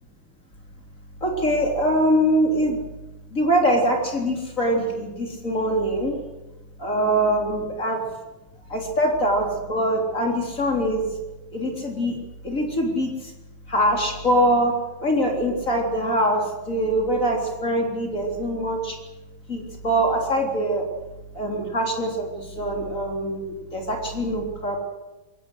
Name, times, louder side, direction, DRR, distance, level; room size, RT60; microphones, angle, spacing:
voice 1, 1.2-2.8 3.3-6.2 6.8-8.0 8.7-11.1 11.5-12.1 12.4-13.3 13.7-14.8 15.0-19.0 19.5-20.9 21.3-24.8, equal, 40° left, 1 dB, 3.9 m, -23 dB
22.0 x 18.0 x 8.0 m, 1.1 s
omnidirectional pair, 2.2 m